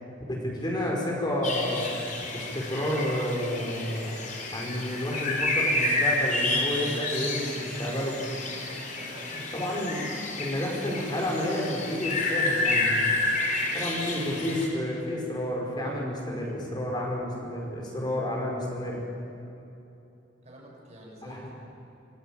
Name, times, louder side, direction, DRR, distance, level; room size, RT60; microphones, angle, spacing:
voice 1, 0.3-1.9 2.3-4.2 4.5-8.2 9.3-13.0 13.7-19.0 21.2-21.5, left 1 dB, 25° left, -1 dB, 5.3 m, -30 dB
sound 1, 1.4-14.7, left 2 dB, 45° left, 4.4 m, -30 dB
voice 2, 9.0-9.4 20.4-21.6, right 1 dB, 40° right, -1 dB, 6.4 m, -48 dB
26.0 x 22.0 x 9.1 m, 2.8 s
head